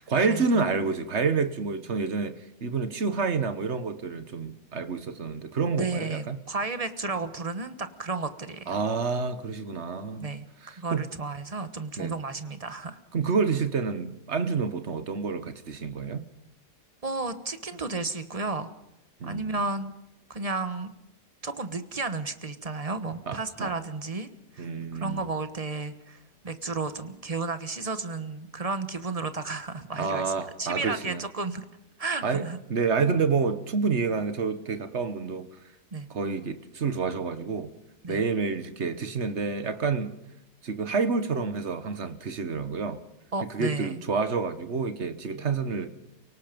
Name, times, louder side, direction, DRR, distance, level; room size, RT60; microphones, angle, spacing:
voice 1, 0.0-6.4 8.7-10.3 10.6-11.1 12.0-12.2 13.1-16.3 19.2-19.6 23.3-23.7 24.6-25.2 30.0-31.2 32.2-35.5 36.1-37.7 38.1-40.1 40.6-43.0 43.5-45.9, right 5 dB, 45° right, 1.5 m, -28 dB
voice 2, 5.8-8.8 10.2-10.4 10.8-13.0 17.0-18.7 19.2-19.9 20.3-20.9 21.4-24.3 24.5-30.3 30.6-31.6 32.0-32.6 35.9-36.1 38.0-38.2 43.3-44.0 45.3-45.4, right 3 dB, 25° right, 1.2 m, -33 dB
30.0 x 18.5 x 5.3 m
omnidirectional pair, 1.8 m